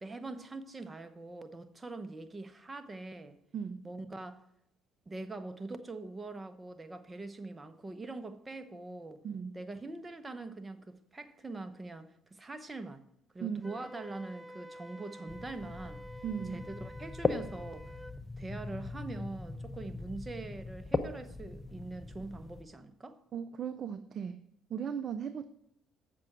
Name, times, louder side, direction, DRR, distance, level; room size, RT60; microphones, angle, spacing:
voice 1, 0.0-3.4 3.8-4.4 5.1-9.2 9.5-13.0 13.3-16.0 16.5-18.0 18.4-23.2, right 2 dB, 25° right, 0.9 m, -43 dB
voice 2, 3.5-3.9 9.2-9.6 13.4-13.8 16.2-16.7 23.3-24.4 24.7-25.5, right 7 dB, 50° right, 0.4 m, -37 dB
Wind instrument woodwind instrument, 13.6-18.2, equal, 5° right, 0.6 m, -50 dB
sound 1, 15.3-22.6, left 3 dB, 25° left, 0.8 m, -39 dB
7.6 x 6.1 x 5.9 m
supercardioid pair, 70°, 0 cm